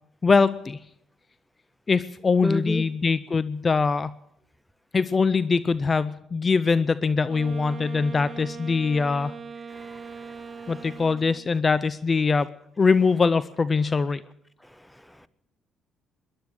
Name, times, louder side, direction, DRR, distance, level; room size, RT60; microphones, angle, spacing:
voice 1, 0.2-0.8 1.9-4.1 4.9-9.3 10.7-12.5 12.8-14.2, left 4 dB, 35° left, 16 dB, 0.5 m, -22 dB
voice 2, 2.4-2.8 9.7-10.7 14.6-15.3, left 1 dB, 5° left, 16 dB, 0.9 m, -33 dB
Wind instrument woodwind instrument, 7.2-11.6, right 5 dB, 50° right, 1.0 m, -40 dB
20.0 x 11.5 x 6.4 m, 0.76 s
supercardioid pair, 70°, 0 cm